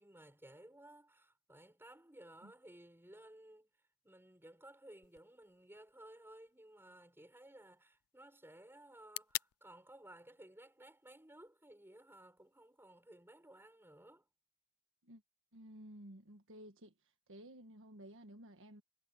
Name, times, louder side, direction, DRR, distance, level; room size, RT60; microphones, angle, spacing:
voice 1, 0.0-3.7 4.0-14.3, right 1 dB, 10° right, 6.6 m, -58 dB
sound 1, 5.0-13.0, left 18 dB, 70° left, 0.4 m, -51 dB
voice 2, 15.5-16.9 17.3-18.8, equal, 60° right, 1.6 m, -54 dB
head